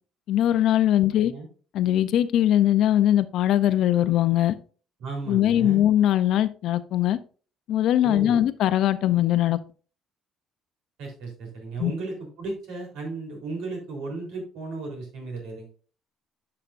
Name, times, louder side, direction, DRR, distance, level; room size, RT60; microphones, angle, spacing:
voice 1, 0.3-1.3 1.7-4.5 5.3-7.2 7.7-9.6 11.8-11.9, left 12 dB, 70° left, 14 dB, 0.5 m, -21 dB
voice 2, 1.1-1.5 5.0-5.8 8.0-8.4 11.0-15.7, right 3 dB, 80° right, 1 dB, 3.5 m, -35 dB
10.0 x 5.8 x 2.5 m, 0.39 s
cardioid pair, 115°, 0 cm